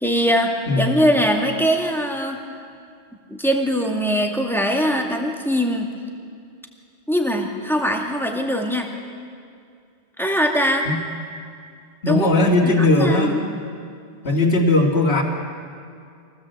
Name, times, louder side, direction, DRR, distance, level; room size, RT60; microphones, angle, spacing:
voice 1, 0.0-2.4 3.3-5.9 7.1-8.9 10.2-10.9 12.1-12.3 12.6-13.4, equal, ahead, 1 dB, 2.2 m, -21 dB
voice 2, 0.7-1.1 10.8-11.0 12.0-13.4 14.2-15.2, left 2 dB, 60° left, -1 dB, 2.7 m, -18 dB
24.0 x 17.5 x 8.1 m, 2.3 s
omnidirectional pair, 1.2 m